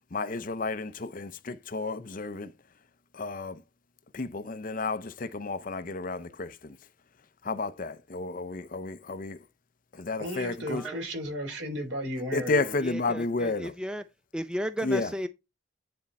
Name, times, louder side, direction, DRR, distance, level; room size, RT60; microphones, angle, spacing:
voice 1, 0.1-2.5 3.1-3.6 4.1-6.8 7.4-9.4 9.9-10.9 12.3-13.7 14.8-15.1, left 3 dB, 45° left, 0.6 m, -32 dB
voice 2, 10.2-12.8, equal, 70° right, 4.2 m, -34 dB
voice 3, 10.7-11.0 12.8-14.0 14.3-15.3, equal, 5° right, 0.4 m, -34 dB
9.7 x 4.5 x 4.1 m
head